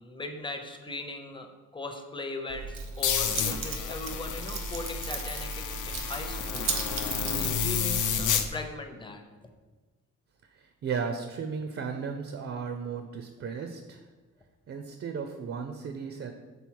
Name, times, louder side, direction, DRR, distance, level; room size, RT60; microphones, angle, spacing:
voice 1, 0.0-9.5, left 2 dB, 15° left, 4 dB, 0.6 m, -39 dB
Keys jangling, 2.5-8.5, right 4 dB, 85° right, 1.0 m, -36 dB
sound 1, 3.0-8.5, left 8 dB, 70° left, 0.6 m, -31 dB
voice 2, 10.5-14.1 14.7-16.3, right 6 dB, 45° right, 6 dB, 0.5 m, -35 dB
7.1 x 4.0 x 4.6 m, 1.3 s
wide cardioid pair, 175°, 31 cm